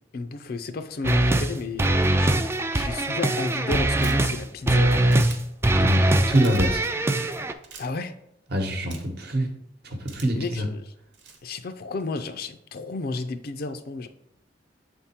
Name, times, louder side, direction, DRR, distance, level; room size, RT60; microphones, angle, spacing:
voice 1, 0.0-2.5 2.7-5.2 7.8-8.1 10.3-10.9 11.4-14.1, left 3 dB, 55° left, 9 dB, 0.5 m, -33 dB
sound 1, 1.0-1.5 1.8-4.4 4.7-5.4 5.6-7.5, right 1 dB, 15° right, 0.3 m, -22 dB
sound 2, 3.9-4.3 5.1-5.4 6.3-6.6 7.6-7.9 8.9-9.2 10.1-10.5 11.1-11.4, right 6 dB, 85° right, 1.1 m, -43 dB
voice 2, 5.8-6.8 8.5-9.5 9.8-10.6, right 1 dB, 60° right, 4 dB, 1.0 m, -25 dB
7.4 x 3.6 x 4.3 m, 0.80 s
head